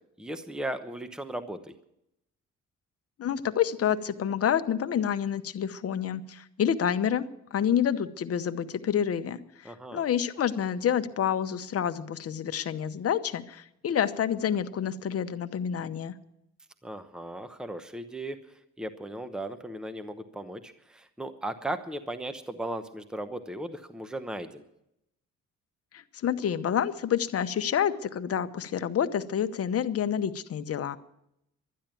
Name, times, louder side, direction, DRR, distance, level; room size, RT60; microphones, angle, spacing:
voice 1, 0.2-1.7 9.6-10.0 16.8-18.4 18.8-24.6, right 1 dB, ahead, 10 dB, 0.9 m, -36 dB
voice 2, 3.2-16.1 25.9-31.0, left 9 dB, 50° left, 11 dB, 0.9 m, -28 dB
12.0 x 10.0 x 9.1 m, 0.82 s
cardioid pair, 90°, 30 cm